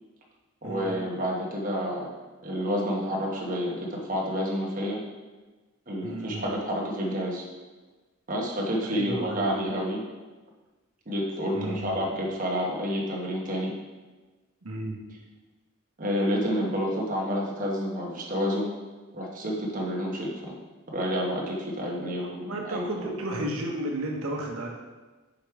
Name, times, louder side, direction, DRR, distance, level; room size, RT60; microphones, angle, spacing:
voice 1, 0.6-2.1 2.4-5.0 5.9-7.4 8.3-10.0 11.1-13.7 16.0-18.7 19.1-20.5 20.9-23.1, equal, 40° right, -2 dB, 1.1 m, -29 dB
voice 2, 6.0-6.5 8.8-9.6 11.5-12.0 14.6-15.0 22.0-24.7, right 1 dB, 80° right, 0 dB, 1.2 m, -33 dB
5.1 x 5.0 x 4.8 m, 1.2 s
head